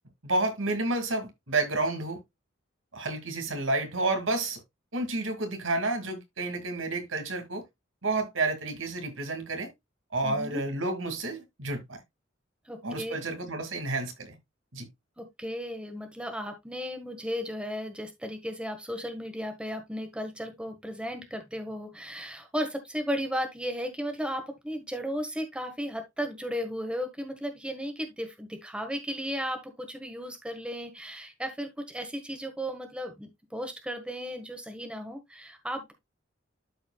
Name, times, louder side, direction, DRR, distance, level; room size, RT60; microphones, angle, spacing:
voice 1, 0.2-2.2 2.9-4.6 4.9-7.6 8.0-9.7 10.1-12.0 12.8-14.4 14.7-14.9, right 2 dB, 75° right, 2.2 m, -30 dB
voice 2, 10.2-10.6 12.7-13.1 15.2-35.9, equal, 5° right, 1.4 m, -35 dB
12.5 x 4.8 x 2.3 m
head